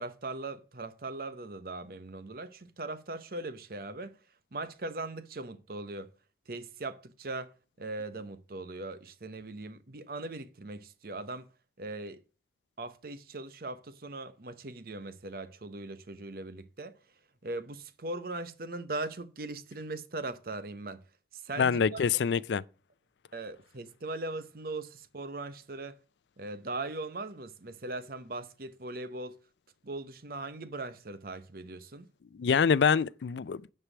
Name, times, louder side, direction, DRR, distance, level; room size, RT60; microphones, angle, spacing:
voice 1, 0.0-4.1 4.5-6.1 6.5-7.5 7.8-11.5 11.8-12.2 12.8-16.9 17.4-21.0 21.3-22.0 23.3-26.0 26.4-29.4 29.8-32.1, right 2 dB, 55° right, 0.8 m, -39 dB
voice 2, 21.6-22.6 32.3-33.6, left 6 dB, 80° left, 0.4 m, -25 dB
10.0 x 4.7 x 6.0 m
head